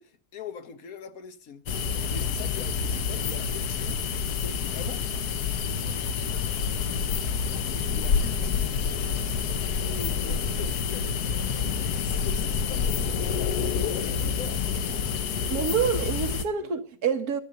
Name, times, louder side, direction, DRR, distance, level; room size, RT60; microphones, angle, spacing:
voice 1, 0.0-5.2 6.2-6.6 7.9-9.2 9.7-11.4 11.9-15.7 16.6-16.8, left 6 dB, 65° left, 1.5 m, -43 dB
sound 1, 1.7-16.4, left 6 dB, 85° left, 1.4 m, -28 dB
voice 2, 15.5-17.4, right 6 dB, 75° right, 1.7 m, -27 dB
12.5 x 7.1 x 7.7 m
omnidirectional pair, 1.6 m